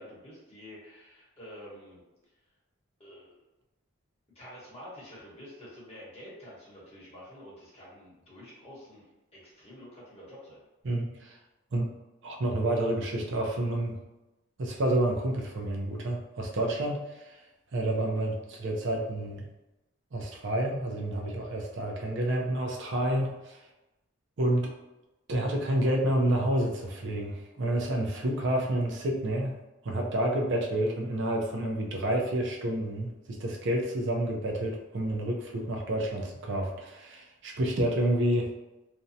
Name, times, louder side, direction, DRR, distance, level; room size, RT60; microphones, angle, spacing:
voice 1, 0.0-2.0 3.0-3.3 4.3-9.0 9.3-10.6, equal, 30° left, -7 dB, 1.0 m, -48 dB
voice 2, 10.8-11.4 11.7-12.0 12.2-14.0 14.6-17.4 17.7-19.4 20.1-23.6 24.4-24.7 25.3-29.6 29.8-38.5, right 1 dB, 60° right, 0 dB, 0.5 m, -29 dB
2.6 x 2.1 x 2.6 m, 1.0 s
head